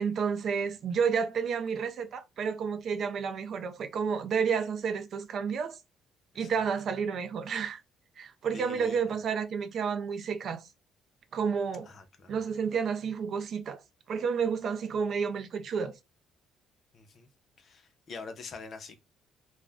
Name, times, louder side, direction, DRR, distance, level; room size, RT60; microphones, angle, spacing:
voice 1, 0.0-5.8 6.4-7.8 8.2-10.6 11.3-11.9 12.3-13.8 14.1-15.9, right 6 dB, 55° right, 0.4 m, -30 dB
voice 2, 8.5-9.0 11.9-12.3 16.9-17.3 17.6-19.0, left 4 dB, 45° left, 0.6 m, -45 dB
2.4 x 2.1 x 3.3 m
cardioid pair, 120°, 0 cm